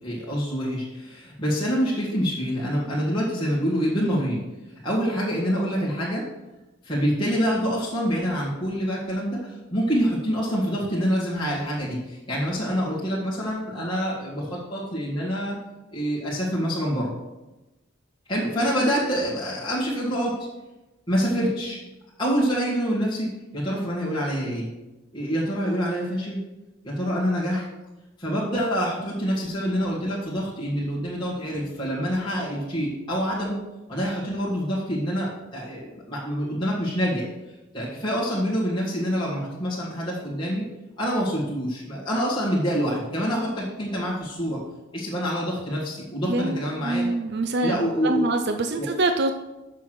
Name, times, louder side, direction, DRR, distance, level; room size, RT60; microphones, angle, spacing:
voice 1, 0.0-4.4 4.8-6.3 6.8-15.6 15.9-17.1 18.3-20.5 21.1-21.8 22.2-24.7 25.1-26.4 26.8-27.6 28.2-37.2 37.7-40.6 41.0-44.6 44.9-47.1 47.6-48.4 48.8-48.9, equal, 20° left, -8 dB, 1.8 m, -26 dB
voice 2, 46.3-49.3, right 2 dB, 50° right, 6 dB, 0.5 m, -25 dB
7.2 x 6.3 x 6.0 m, 1.0 s
head